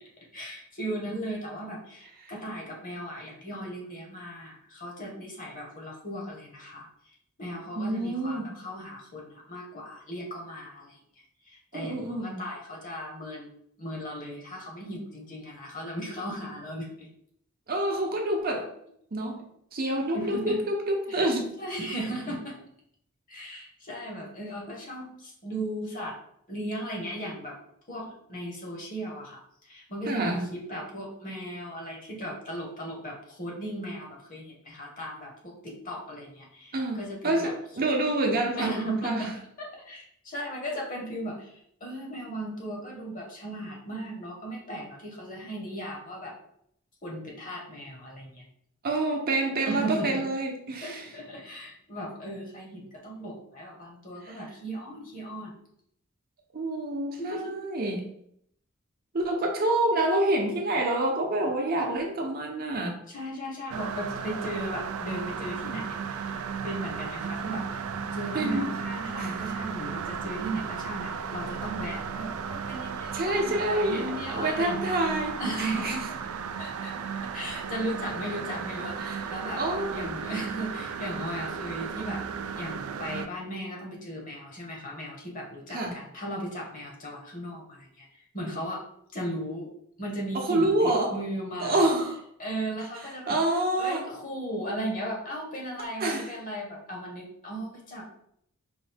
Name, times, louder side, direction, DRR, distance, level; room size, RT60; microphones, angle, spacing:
voice 1, 0.3-6.9 7.4-11.0 11.4-13.5 13.8-17.1 20.1-20.6 21.1-21.3 21.6-22.6 23.3-26.2 26.5-27.6 27.9-37.5 38.6-39.3 39.6-46.3 47.0-48.4 49.6-50.2 50.8-55.5 57.2-57.6 63.1-67.9 68.1-74.9 75.4-76.1 76.6-76.9 77.3-79.6 79.9-82.2 82.6-88.0 88.3-88.8 89.1-89.7 90.0-91.9 92.4-93.4 93.8-98.0, right 1 dB, 40° left, -1 dB, 1.2 m, -36 dB
voice 2, 7.8-8.5 11.7-12.4 17.7-18.7 19.1-19.4 19.7-21.5 30.1-30.4 36.7-38.7 39.0-39.3 48.8-51.1 54.2-54.4 56.5-58.1 59.1-63.0 68.3-68.7 69.2-69.3 73.1-74.0 74.3-76.0 79.0-79.3 79.6-80.1 85.7-86.0 90.3-91.1 91.6-92.2 93.3-94.0 96.0-96.3, right 1 dB, 45° right, 1 dB, 0.7 m, -27 dB
sound 1, 63.7-83.3, right 6 dB, 80° right, 0.4 m, -35 dB
4.6 x 2.6 x 3.4 m, 0.70 s
head